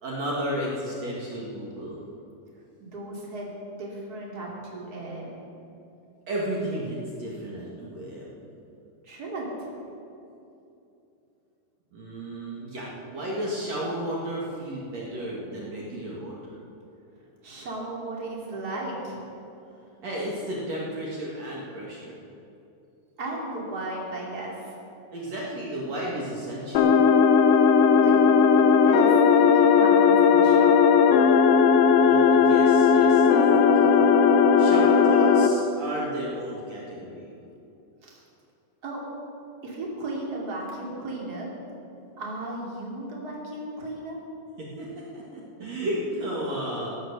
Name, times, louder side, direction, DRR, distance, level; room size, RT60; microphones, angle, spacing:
voice 1, 0.0-2.0 6.3-8.3 11.9-16.6 20.0-22.1 25.1-27.0 32.0-34.0 34.6-37.3 44.6-46.9, right 1 dB, 60° right, -4 dB, 3.0 m, -33 dB
voice 2, 2.8-3.5 3.8-5.4 9.0-9.7 17.4-19.2 23.2-24.7 28.0-28.2 28.6-31.0 38.0-38.2 38.8-39.0 39.6-41.5 42.2-44.2, right 2 dB, 30° right, -3 dB, 3.1 m, -35 dB
sound 1, 26.7-35.5, left 6 dB, 70° left, 1.5 m, -17 dB
16.0 x 10.5 x 6.7 m, 2.7 s
omnidirectional pair, 3.6 m